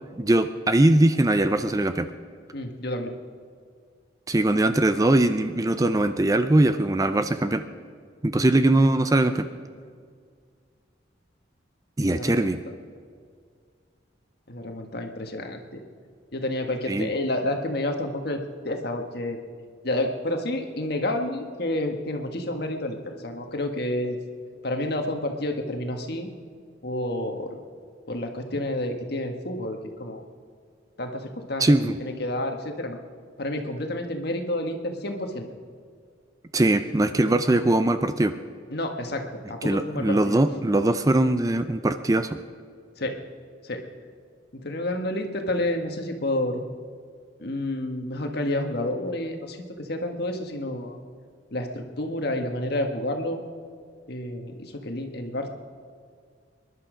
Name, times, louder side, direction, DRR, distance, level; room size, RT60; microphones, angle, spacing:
voice 1, 0.2-2.1 4.3-7.6 8.2-9.5 12.0-12.6 16.9-17.1 31.6-32.0 36.5-38.3 39.6-42.4, right 1 dB, 20° right, 10 dB, 0.5 m, -21 dB
voice 2, 2.5-3.1 8.4-8.5 12.0-12.5 14.5-15.8 16.3-19.4 19.8-24.2 24.6-26.3 26.8-27.6 28.1-30.2 31.0-31.6 32.0-33.0 33.4-35.5 38.7-40.4 43.0-43.1 43.6-43.8 44.5-46.6 47.4-51.0 51.5-53.4 54.1-55.5, left 1 dB, 55° left, 4 dB, 1.5 m, -29 dB
25.0 x 11.5 x 5.1 m, 2.1 s
head